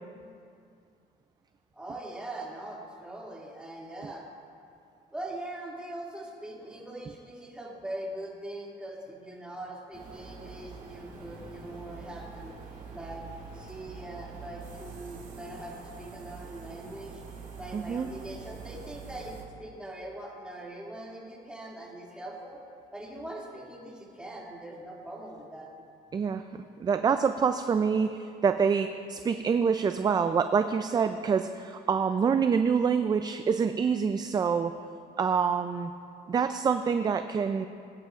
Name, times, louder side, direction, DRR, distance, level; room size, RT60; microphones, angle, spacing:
voice 1, 1.7-4.3 5.1-12.6 12.9-13.3 13.5-17.2 17.6-22.6 22.9-25.7, right 1 dB, 5° right, -4 dB, 2.4 m, -42 dB
sound 1, 9.9-19.4, right 5 dB, 50° right, 2.4 m, -45 dB
voice 2, 17.7-18.1 26.1-26.4 26.8-34.7 35.2-35.9 36.3-37.7, right 6 dB, 25° right, 9 dB, 0.4 m, -26 dB
20.5 x 9.9 x 2.5 m, 2.4 s
cardioid pair, 110°, 17 cm